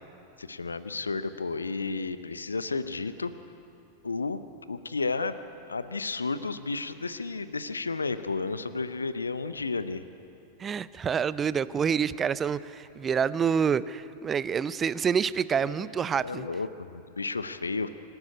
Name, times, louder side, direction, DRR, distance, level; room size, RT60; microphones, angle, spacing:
voice 1, 0.4-3.3 4.0-4.4 4.7-5.4 5.7-10.0 15.6-15.8 16.2-17.9, left 4 dB, 75° left, 13 dB, 0.8 m, -32 dB
voice 2, 10.6-16.5, right 7 dB, 20° right, 18 dB, 0.5 m, -27 dB
25.5 x 13.0 x 8.6 m, 2.7 s
figure-of-eight pair, 90°, 0 cm